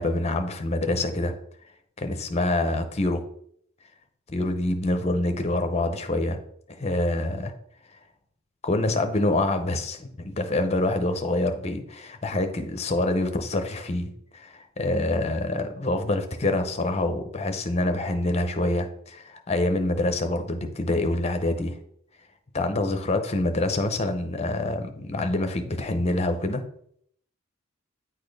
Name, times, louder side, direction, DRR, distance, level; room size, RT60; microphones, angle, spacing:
voice 1, 0.0-1.3 2.0-3.2 4.3-6.4 6.7-7.5 8.6-10.1 10.4-21.8 22.5-26.6, left 2 dB, 30° left, 7 dB, 0.7 m, -26 dB
9.1 x 4.2 x 3.3 m, 0.67 s
head